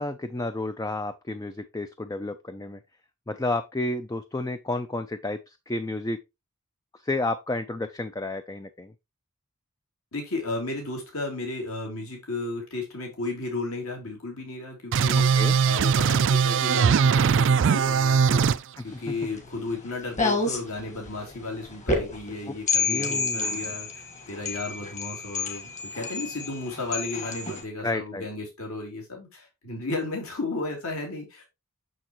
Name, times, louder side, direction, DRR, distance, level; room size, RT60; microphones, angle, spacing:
voice 1, 0.0-2.8 3.3-6.2 7.0-8.9 15.1-15.5 18.8-18.9 22.5-22.6 22.9-23.6 27.8-28.3, left 2 dB, 15° left, 9 dB, 0.4 m, -31 dB
voice 2, 10.1-31.4, left 2 dB, 70° left, 0 dB, 3.1 m, -34 dB
sound 1, 14.9-18.6, right 6 dB, 60° right, 0.4 m, -20 dB
sound 2, 18.9-27.6, left 3 dB, 35° left, 1.7 m, -30 dB
6.8 x 6.3 x 3.0 m, 0.24 s
head